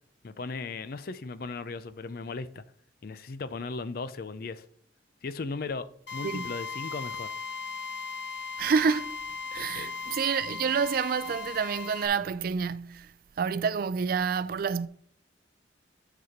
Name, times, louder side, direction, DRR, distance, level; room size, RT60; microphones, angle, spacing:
voice 1, 0.2-2.6 3.0-4.6 5.2-7.3 9.6-9.9, left 4 dB, 55° left, 0.5 m, -37 dB
Drill, 6.1-12.1, left 5 dB, 70° left, 1.5 m, -37 dB
voice 2, 8.6-9.1 9.5-13.1 13.4-14.9, right 6 dB, 55° right, 0.3 m, -28 dB
9.4 x 4.1 x 4.4 m
head